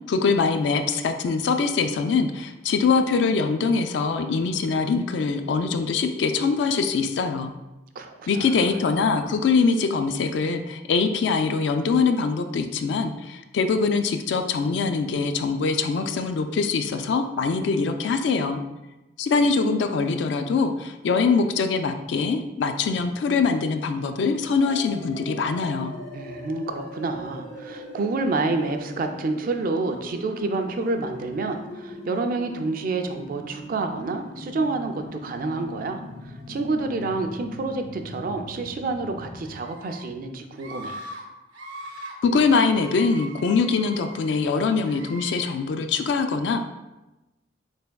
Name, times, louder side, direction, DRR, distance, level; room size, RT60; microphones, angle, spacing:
voice 1, 0.1-7.5 8.3-18.6 19.2-25.9 42.2-46.6, left 4 dB, 65° left, 8 dB, 0.3 m, -23 dB
voice 2, 8.0-8.7 26.1-36.0 36.5-41.0, right 3 dB, 50° right, 6 dB, 0.3 m, -28 dB
sound 1, 24.6-39.5, left 1 dB, 85° left, 1.0 m, -40 dB
Screaming, 39.4-40.0 40.6-41.2 41.5-42.1 42.5-44.3 44.8-45.5, right 1 dB, 80° right, 0.7 m, -40 dB
4.1 x 3.4 x 2.2 m, 1.0 s
head